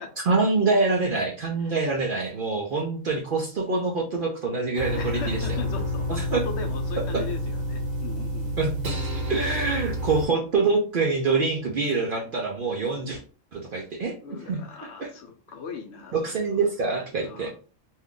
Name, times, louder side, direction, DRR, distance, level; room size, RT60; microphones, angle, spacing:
voice 1, 0.3-5.6 6.1-6.4 7.1-7.2 8.6-9.0 9.3-13.2 13.5-14.6 15.0-15.1 16.1-17.5, right 3 dB, 60° right, 0 dB, 0.6 m, -25 dB
sound 1, 4.7-10.3, equal, 85° right, 1.3 m, -29 dB
voice 2, 4.9-8.6 14.2-16.5 17.2-17.5, left 5 dB, 65° left, 4 dB, 0.8 m, -39 dB
2.7 x 2.3 x 3.6 m, 0.38 s
omnidirectional pair, 1.3 m